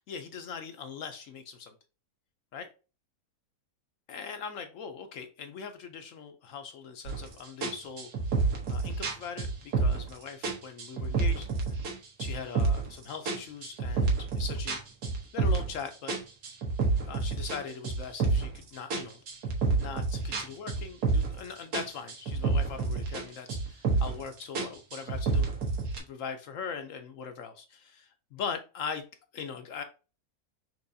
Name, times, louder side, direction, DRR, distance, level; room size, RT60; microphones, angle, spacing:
voice 1, 0.1-1.7 2.5-2.7 4.1-8.1 8.7-11.8 12.2-14.8 15.3-16.2 17.0-19.2 19.8-25.5 26.0-29.1 29.3-29.8, left 6 dB, 65° left, 7 dB, 0.9 m, -40 dB
sound 1, 7.1-7.3 7.6-10.1 10.4-11.9 12.2-12.9 13.3-15.8 16.1-18.6 18.9-21.5 21.7-23.2 23.5-24.2 24.6-26.0, right 4 dB, 90° right, 1.6 m, -29 dB
6.1 x 3.0 x 2.6 m, 0.33 s
omnidirectional pair, 1.6 m